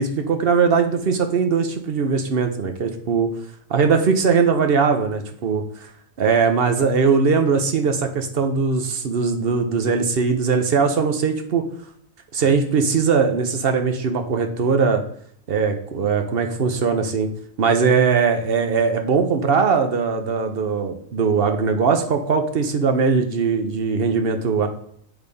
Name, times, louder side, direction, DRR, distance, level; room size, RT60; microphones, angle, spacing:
voice 1, 0.0-3.3 3.7-5.9 6.2-11.7 12.3-15.0 15.5-17.3 17.6-24.7, right 5 dB, 50° right, 6 dB, 0.8 m, -20 dB
8.5 x 3.5 x 5.3 m, 0.64 s
omnidirectional pair, 1.6 m